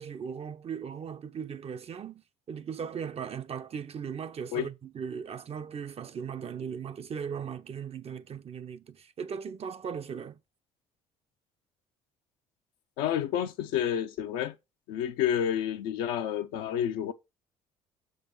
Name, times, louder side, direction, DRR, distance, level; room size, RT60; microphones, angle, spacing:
voice 1, 0.0-2.2 2.5-10.4, right 7 dB, 40° right, 0.8 m, -38 dB
voice 2, 13.0-14.5 14.9-17.1, left 9 dB, 70° left, 0.8 m, -29 dB
6.7 x 3.9 x 5.6 m
hypercardioid pair, 60°, 16 cm